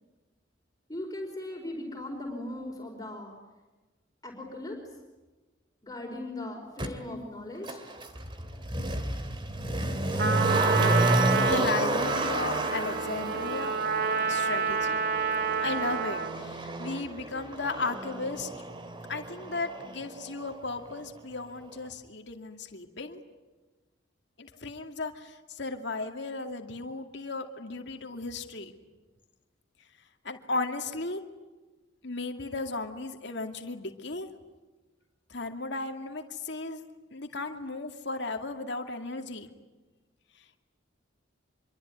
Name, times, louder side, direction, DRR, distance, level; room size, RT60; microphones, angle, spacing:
voice 1, 0.9-3.3 4.2-4.8 5.8-7.8, left 1 dB, 20° left, 0 dB, 4.9 m, -38 dB
Motor vehicle (road), 6.8-6.9 7.6-20.6 20.8-20.9, right 1 dB, 25° right, 2.5 m, -31 dB
Trumpet, 10.2-16.4, right 5 dB, 55° right, 2.4 m, -29 dB
voice 2, 11.4-13.7 14.3-15.0 15.6-18.5 19.1-23.2 24.4-28.7 30.2-31.2 32.0-34.3 35.3-36.8 37.1-39.5 40.4-40.5, left 3 dB, 65° left, 4 dB, 2.4 m, -35 dB
26.5 x 24.0 x 9.5 m, 1.2 s
head